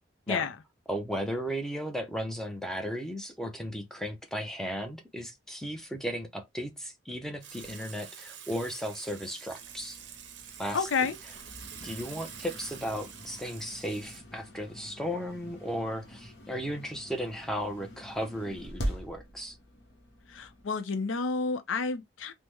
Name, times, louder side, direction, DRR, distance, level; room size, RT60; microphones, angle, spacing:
voice 1, 0.9-10.0 10.6-10.9 11.8-19.6, equal, 5° left, 0.5 m, -35 dB
Water / Water tap faucet / Sink (filling or washing), 7.4-14.2, right 8 dB, 70° right, 0.6 m, -47 dB
sound 1, 9.6-20.6, equal, 60° left, 0.8 m, -43 dB
voice 2, 10.7-11.2 20.3-22.3, left 4 dB, 90° left, 0.6 m, -30 dB
3.5 x 2.0 x 3.0 m
head